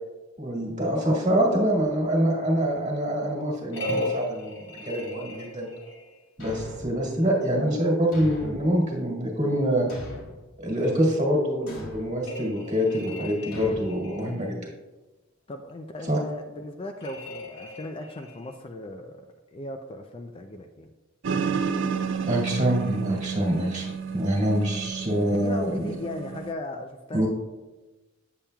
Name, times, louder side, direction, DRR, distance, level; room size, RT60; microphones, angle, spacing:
voice 1, 0.4-5.7 6.4-9.9 10.6-14.6 16.0-16.2 22.2-25.7 27.1-27.3, equal, 35° right, -3 dB, 1.7 m, -25 dB
sound 1, 3.7-6.2 12.2-14.4 17.0-18.5, left 1 dB, 55° left, 1.1 m, -37 dB
Thump thud, 6.4-7.0 8.1-8.7 9.9-10.4 11.7-12.1 13.5-13.8, left 1 dB, 85° left, 2.1 m, -39 dB
voice 2, 15.5-20.9 25.3-27.3, left 2 dB, 25° left, 5 dB, 0.3 m, -37 dB
sound 2, 21.2-26.5, right 6 dB, 60° right, 0.4 m, -31 dB
8.4 x 7.2 x 2.3 m, 1.1 s
head